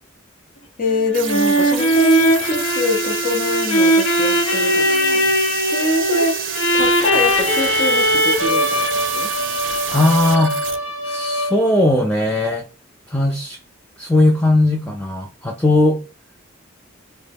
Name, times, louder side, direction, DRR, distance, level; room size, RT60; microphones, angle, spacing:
voice 1, 0.8-6.4 6.7-9.3, left 2 dB, 45° left, 0.6 m, -24 dB
sound 1, 0.9-11.7, equal, 75° left, 0.8 m, -19 dB
sound 2, 1.1-10.8, right 10 dB, 70° right, 0.5 m, -29 dB
voice 2, 9.9-10.6 11.0-12.6 13.1-13.6 14.0-16.0, left 2 dB, 5° left, 0.4 m, -18 dB
3.9 x 2.2 x 3.4 m
head